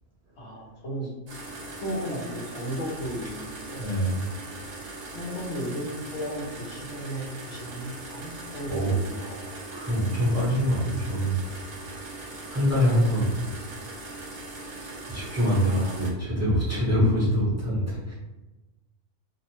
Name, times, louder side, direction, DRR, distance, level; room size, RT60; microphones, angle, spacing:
voice 1, 0.4-1.1 1.8-3.8 4.4-4.5 5.1-9.7 15.7-16.0, equal, 65° left, -2 dB, 0.9 m, -35 dB
sound 1, 1.3-16.1, right 2 dB, 45° right, 0.5 m, -40 dB
voice 2, 3.8-4.2 8.7-8.9 9.7-11.4 12.5-13.3 15.1-18.1, equal, 15° right, -8 dB, 0.8 m, -24 dB
2.5 x 2.1 x 2.8 m, 1.1 s
omnidirectional pair, 1.3 m